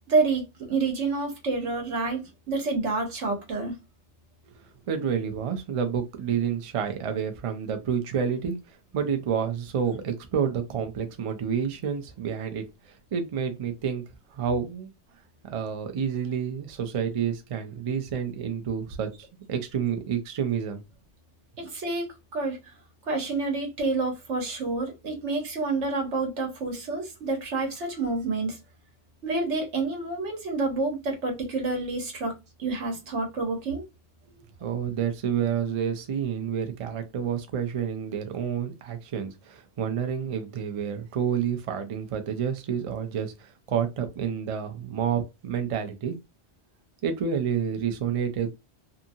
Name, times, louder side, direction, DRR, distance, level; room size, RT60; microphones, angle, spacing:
voice 1, 0.1-3.7 21.6-22.6 23.0-28.6 29.2-32.3 32.6-33.8, right 3 dB, 85° right, 1.3 m, -28 dB
voice 2, 4.5-14.0 14.3-14.9 15.4-20.8 34.6-46.2 47.0-48.5, right 7 dB, 50° right, 0.4 m, -29 dB
2.7 x 2.5 x 2.6 m
omnidirectional pair, 1.2 m